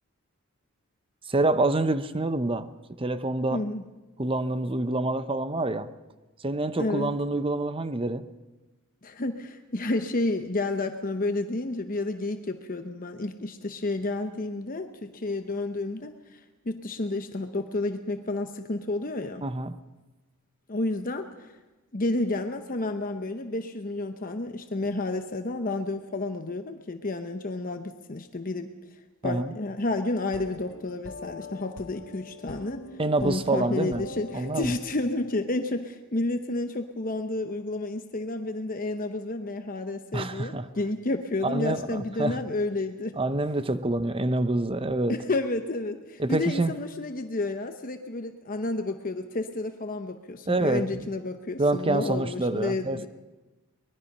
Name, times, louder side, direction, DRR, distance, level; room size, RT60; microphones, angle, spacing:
voice 1, 1.3-2.7 3.0-3.6 4.2-5.9 6.4-8.3 19.4-19.8 29.2-29.5 33.0-34.0 34.3-34.8 40.1-40.7 41.4-42.4 43.2-45.1 46.2-46.7 50.5-51.1 51.6-53.1, right 2 dB, 25° right, 0.7 m, -27 dB
voice 2, 3.5-3.8 6.8-7.1 9.0-16.4 16.6-19.4 20.7-21.5 21.9-28.7 29.2-32.9 33.2-43.2 45.1-53.1, left 2 dB, 40° left, 0.9 m, -31 dB
sound 1, 30.2-35.3, left 3 dB, 60° left, 1.8 m, -43 dB
23.5 x 20.5 x 5.5 m
head